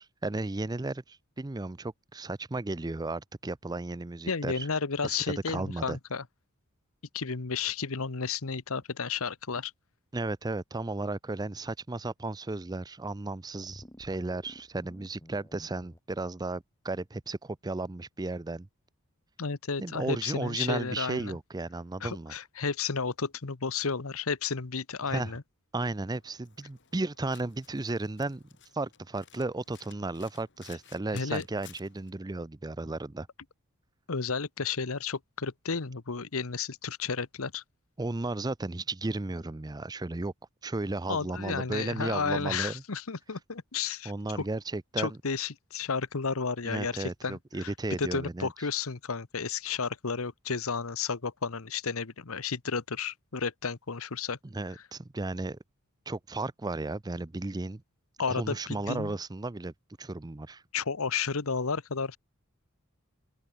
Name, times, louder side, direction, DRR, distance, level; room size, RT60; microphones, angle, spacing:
voice 1, 0.0-4.7 5.0-6.0 10.1-18.7 19.8-22.3 25.1-25.3 25.7-28.4 28.7-33.3 38.0-40.3 40.6-42.8 44.1-45.2 46.6-48.5 54.5-55.6 56.1-57.8 58.3-60.6, right 2 dB, 20° right, 0.5 m, -34 dB
voice 2, 4.3-6.2 7.1-9.7 19.4-21.4 22.0-25.4 31.1-31.4 34.1-37.6 41.1-44.4 45.0-47.7 48.0-54.4 58.2-59.1 60.7-62.2, left 5 dB, 70° left, 1.1 m, -32 dB
sound 1, 13.5-16.0, equal, 15° left, 7.2 m, -52 dB
Domestic sounds home sounds, 26.1-32.1, left 10 dB, 55° left, 4.3 m, -56 dB
head